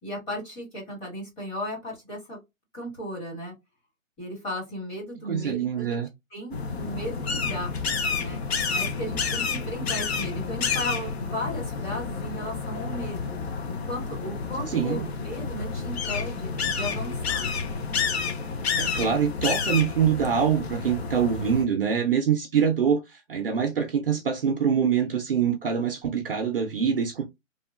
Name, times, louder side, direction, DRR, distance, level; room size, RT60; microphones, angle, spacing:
voice 1, 0.0-2.4 2.7-3.5 4.2-6.0 6.3-7.7 8.1-13.3 13.6-17.5, equal, 10° left, 1.1 m, -35 dB
voice 2, 5.3-6.1 14.7-15.1 18.8-27.2, right 7 dB, 45° right, 0.5 m, -24 dB
sound 1, 6.5-21.6, left 5 dB, 50° left, 0.7 m, -30 dB
3.0 x 2.3 x 2.3 m
hypercardioid pair, 155°, 41 cm